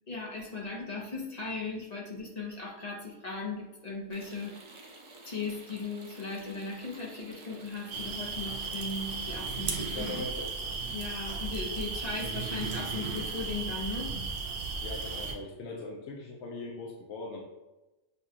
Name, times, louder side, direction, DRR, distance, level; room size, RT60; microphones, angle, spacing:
voice 1, 0.1-4.5 5.2-10.3 10.9-14.1, left 3 dB, 35° left, -2 dB, 0.9 m, -37 dB
sound 1, 4.1-10.1, right 2 dB, 50° right, 0.3 m, -51 dB
sound 2, 7.9-15.3, right 4 dB, 75° right, 1.0 m, -35 dB
voice 2, 9.9-10.5 14.8-17.4, left 2 dB, 70° left, 0 dB, 0.9 m, -40 dB
6.7 x 2.3 x 2.8 m, 1.0 s
omnidirectional pair, 1.3 m